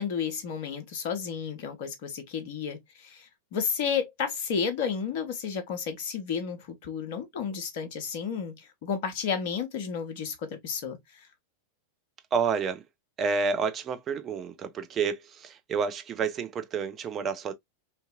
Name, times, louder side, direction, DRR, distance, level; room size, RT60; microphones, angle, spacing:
voice 1, 0.0-11.3, left 6 dB, 50° left, 0.7 m, -32 dB
voice 2, 12.3-12.8 13.2-17.5, right 5 dB, 25° right, 0.4 m, -29 dB
2.7 x 2.5 x 2.2 m
figure-of-eight pair, 90°, 0 cm